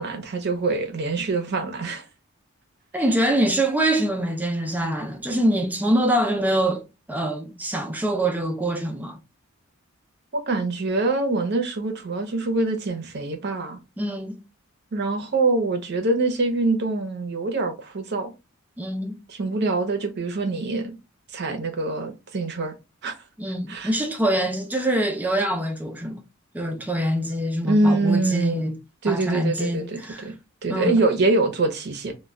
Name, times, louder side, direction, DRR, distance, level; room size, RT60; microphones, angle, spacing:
voice 1, 0.0-2.1 10.3-13.8 14.9-18.3 19.3-21.0 21.3-22.7 23.0-23.1 23.7-23.9 27.6-28.6 29.0-30.3 30.6-32.1, right 2 dB, 50° right, 0.6 m, -24 dB
voice 2, 2.9-6.8 7.1-9.2 14.0-14.4 18.8-19.2 23.4-26.2 26.5-28.7 29.1-30.3 30.7-31.0, right 1 dB, 5° right, 0.3 m, -24 dB
2.2 x 2.1 x 3.5 m
head